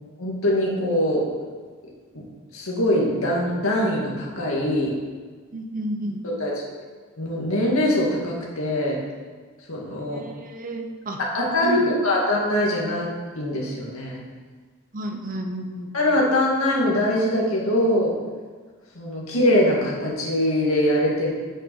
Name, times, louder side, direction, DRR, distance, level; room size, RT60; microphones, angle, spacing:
voice 1, 0.2-1.3 2.1-2.2 2.5-5.0 6.2-6.7 7.2-9.0 9.7-10.2 11.2-13.1 13.4-14.2 15.9-18.1 18.9-21.3, left 1 dB, 70° left, -3 dB, 2.4 m, -22 dB
voice 2, 5.5-6.2 10.1-11.2 11.6-11.8 14.9-15.9, right 1 dB, 40° right, 4 dB, 0.9 m, -31 dB
7.6 x 6.8 x 5.5 m, 1.5 s
head